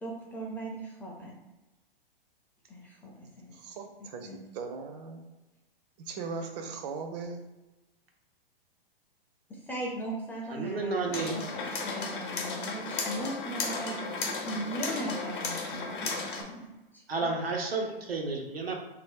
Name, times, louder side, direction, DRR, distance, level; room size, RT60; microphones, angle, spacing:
voice 1, 0.0-1.3 2.7-3.6 4.0-4.5 9.5-14.0 14.4-17.3, right 1 dB, 5° left, -3 dB, 0.5 m, -39 dB
voice 2, 3.5-5.2 6.0-7.5, right 5 dB, 45° right, 5 dB, 0.6 m, -39 dB
voice 3, 10.5-11.4 17.1-18.8, right 3 dB, 90° right, 1 dB, 0.8 m, -31 dB
sound 1, 11.1-16.4, left 4 dB, 60° left, 0.8 m, -34 dB
2.8 x 2.1 x 3.7 m, 1.1 s
hypercardioid pair, 115°, 29 cm